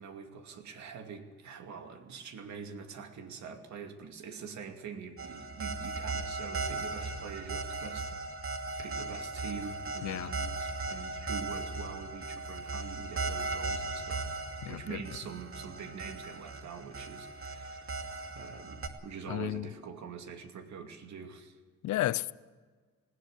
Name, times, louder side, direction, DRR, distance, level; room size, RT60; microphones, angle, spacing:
voice 1, 0.0-8.2 8.8-14.3 14.6-18.0 18.3-21.6, right 6 dB, 65° right, 2.5 m, -44 dB
sound 1, 5.2-18.9, right 3 dB, 45° right, 2.5 m, -37 dB
voice 2, 14.6-15.0 19.3-19.7 21.8-22.3, left 15 dB, 70° left, 0.7 m, -32 dB
19.5 x 17.5 x 7.9 m
cardioid pair, 90°, 30 cm